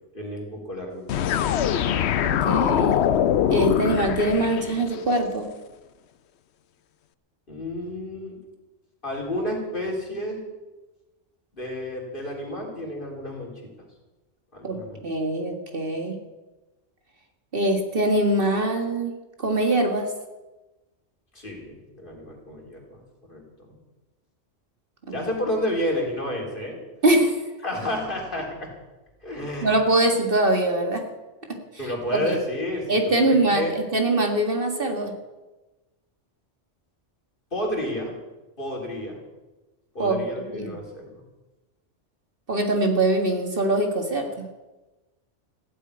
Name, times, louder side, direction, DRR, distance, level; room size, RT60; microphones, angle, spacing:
voice 1, 0.1-1.3 7.5-8.4 9.0-10.4 11.5-13.5 14.5-15.0 21.3-23.0 23.3-23.8 25.1-26.8 27.6-28.7 29.2-29.7 31.8-33.8 37.5-38.1 38.6-39.2 39.9-41.2, left 1 dB, 45° left, -1 dB, 3.9 m, -31 dB
sound 1, 1.1-5.0, left 9 dB, 65° left, 0.9 m, -23 dB
voice 2, 2.2-3.0 3.5-5.5 14.6-16.2 17.5-19.1 19.4-20.1 25.1-25.2 27.0-27.4 29.6-31.1 31.5-31.6 32.1-32.2 32.9-35.1 40.0-40.2 40.5-40.8 42.5-44.5, right 1 dB, 50° right, 4 dB, 1.9 m, -23 dB
15.5 x 8.4 x 9.7 m, 1.1 s
omnidirectional pair, 1.2 m